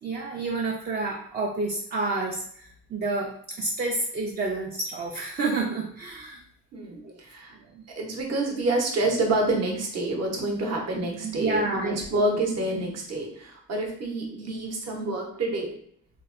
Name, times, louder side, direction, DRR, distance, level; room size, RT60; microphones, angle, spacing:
voice 1, 0.0-6.4 7.0-7.2 7.5-7.8 11.2-12.3, right 3 dB, 30° right, -1 dB, 0.4 m, -29 dB
voice 2, 6.7-7.5 8.0-15.8, right 2 dB, 50° right, 0 dB, 0.8 m, -28 dB
3.0 x 2.1 x 2.4 m, 0.64 s
cardioid pair, 85°, 34 cm